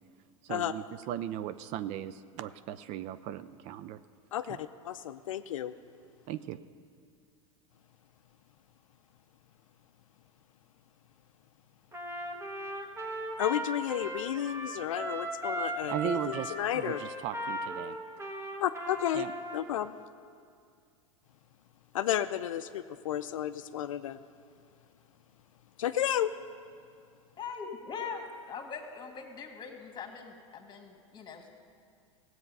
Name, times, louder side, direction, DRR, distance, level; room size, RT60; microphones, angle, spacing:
voice 1, 0.4-4.0 4.5-4.6 6.3-6.6 15.9-18.0 19.1-19.3, right 12 dB, 45° right, 13 dB, 0.4 m, -37 dB
voice 2, 4.3-5.7 13.4-17.0 18.6-19.3 19.5-20.0 21.9-24.2 25.8-26.3, left 11 dB, 80° left, 11 dB, 0.4 m, -32 dB
Trumpet, 11.9-19.7, right 1 dB, 15° right, 1.3 m, -37 dB
voice 3, 27.4-31.5, left 5 dB, 25° left, 4 dB, 1.8 m, -41 dB
16.5 x 7.9 x 5.4 m, 2.2 s
hypercardioid pair, 95°, 17 cm